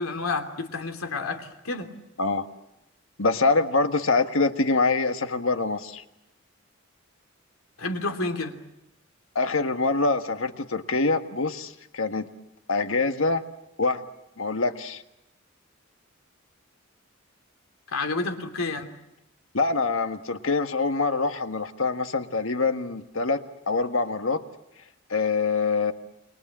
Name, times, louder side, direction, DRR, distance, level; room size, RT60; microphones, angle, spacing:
voice 1, 0.0-1.9 7.8-8.6 17.9-18.9, left 3 dB, 85° left, 6 dB, 2.9 m, -30 dB
voice 2, 3.2-6.0 9.3-12.3 12.7-13.4 13.8-14.0 14.4-15.0 19.5-23.4 23.7-24.4 25.1-25.9, left 3 dB, 70° left, 8 dB, 1.6 m, -25 dB
29.0 x 23.0 x 7.5 m, 0.90 s
head